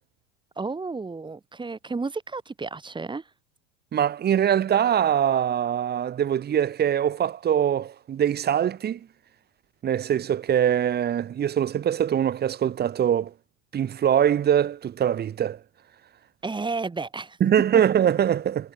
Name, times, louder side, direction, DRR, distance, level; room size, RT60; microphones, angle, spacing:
voice 1, 0.6-3.3 16.4-17.4, right 4 dB, 15° right, 2.8 m, -32 dB
voice 2, 3.9-9.1 9.8-13.3 13.7-15.6 17.4-18.7, right 9 dB, 30° right, 1.5 m, -23 dB
hypercardioid pair, 95°, 32 cm